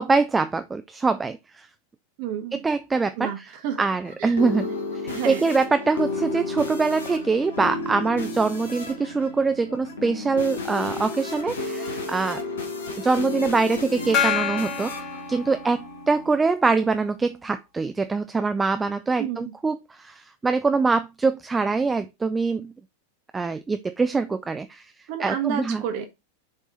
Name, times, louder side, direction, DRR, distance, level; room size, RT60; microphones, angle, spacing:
voice 1, 0.0-1.7 2.5-3.3 3.8-4.7 5.0-12.4 13.0-14.9 15.3-22.7 23.3-24.9 25.2-25.8, right 4 dB, 15° right, 0.4 m, -24 dB
voice 2, 2.2-2.6 3.2-3.8 4.2-4.4 5.1-5.5 19.2-19.5 25.1-26.1, right 9 dB, 45° right, 1.4 m, -30 dB
sound 1, 3.9-16.4, left 3 dB, 65° left, 1.2 m, -33 dB
Gong, 14.1-16.2, left 7 dB, 40° left, 1.4 m, -27 dB
7.3 x 3.5 x 4.0 m
figure-of-eight pair, 90°, 0 cm